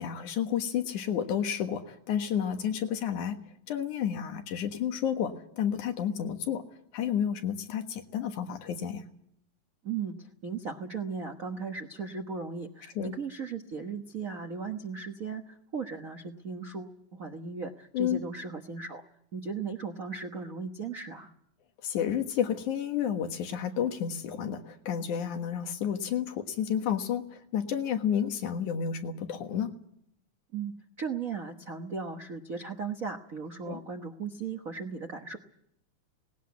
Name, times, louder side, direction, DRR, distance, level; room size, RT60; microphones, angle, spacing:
voice 1, 0.0-3.4 3.7-6.6 6.9-9.0 13.0-13.1 17.9-18.2 21.8-29.7 33.7-33.8, left 8 dB, 80° left, 6 dB, 2.9 m, -31 dB
voice 2, 9.8-19.0 19.3-21.3 30.5-35.4, right 5 dB, 60° right, 5 dB, 0.8 m, -37 dB
19.0 x 18.0 x 9.5 m, 0.73 s
omnidirectional pair, 3.4 m